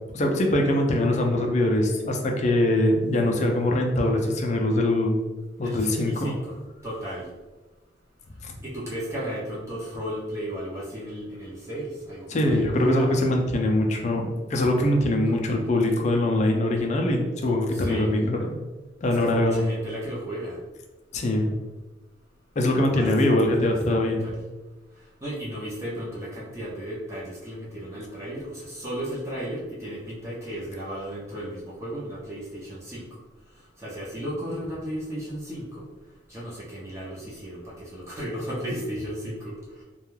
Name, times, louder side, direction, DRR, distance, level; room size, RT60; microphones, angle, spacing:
voice 1, 0.1-5.2 5.6-6.3 8.4-8.5 12.3-18.6 19.0-19.6 21.1-21.5 22.6-24.3, left 1 dB, 40° left, 2 dB, 0.4 m, -23 dB
voice 2, 5.6-6.6 6.8-7.3 8.6-13.2 15.3-15.6 17.7-18.2 19.1-20.6 22.8-23.2 23.6-24.4 25.2-33.1 33.8-35.9 36.3-39.8, equal, 15° right, -7 dB, 0.6 m, -35 dB
2.3 x 2.2 x 3.0 m, 1.2 s
head